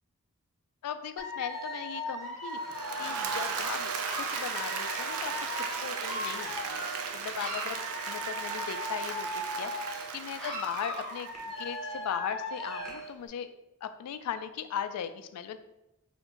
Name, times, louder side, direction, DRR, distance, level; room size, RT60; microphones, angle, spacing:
voice 1, 0.8-7.8 8.1-9.3 9.5-11.3 11.6-13.5 13.8-15.6, left 8 dB, 90° left, 13 dB, 0.3 m, -38 dB
Dog / Alarm, 1.2-7.1 7.4-10.1 10.4-13.1, equal, 5° left, 0.6 m, -38 dB
Applause / Crowd, 2.5-11.7, right 5 dB, 70° right, 0.4 m, -36 dB
2.9 x 2.6 x 3.6 m, 0.92 s
head